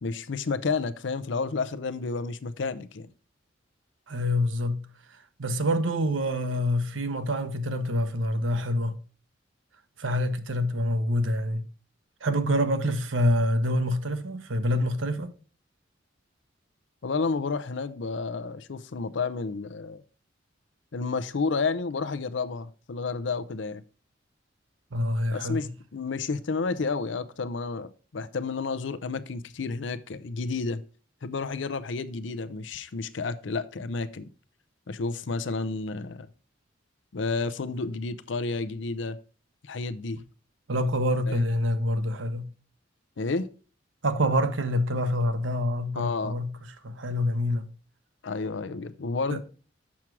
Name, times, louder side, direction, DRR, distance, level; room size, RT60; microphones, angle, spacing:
voice 1, 0.0-3.1 17.0-20.0 20.9-23.8 25.3-30.8 31.2-34.3 34.9-36.3 37.1-39.2 39.6-40.2 41.3-41.4 43.2-43.5 45.9-46.3 48.2-49.4, left 4 dB, 70° left, 0.6 m, -31 dB
voice 2, 4.1-9.0 10.0-11.7 12.2-15.3 24.9-25.7 40.7-42.5 44.0-47.7 49.3-49.4, equal, 85° right, 0.9 m, -26 dB
7.3 x 6.0 x 4.6 m
head